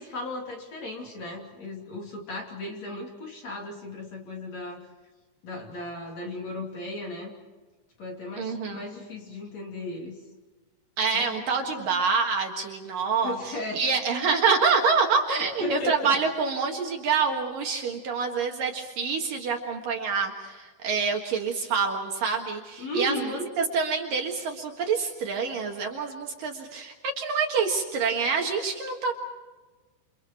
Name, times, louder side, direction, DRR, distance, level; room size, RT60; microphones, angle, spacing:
voice 1, 0.0-4.9 5.4-7.3 8.0-10.1 11.1-11.5 11.8-12.0 13.2-13.8 15.4-16.2 22.8-23.5, left 1 dB, 40° left, 1 dB, 3.7 m, -35 dB
voice 2, 8.4-8.8 11.0-29.2, right 5 dB, 60° right, 2 dB, 3.0 m, -27 dB
29.0 x 27.5 x 4.5 m, 1.3 s
omnidirectional pair, 5.1 m